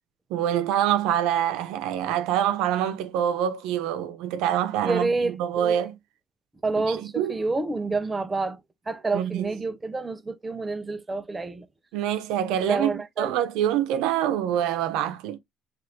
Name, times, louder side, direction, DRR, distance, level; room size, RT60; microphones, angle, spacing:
voice 1, 0.3-5.9 6.9-7.3 9.1-9.5 11.9-15.4, right 10 dB, 90° right, 0.7 m, -25 dB
voice 2, 4.8-5.8 6.6-8.6 8.9-11.7 12.6-13.4, right 3 dB, 15° right, 0.5 m, -28 dB
4.2 x 2.5 x 3.1 m
cardioid pair, 120°, 0 cm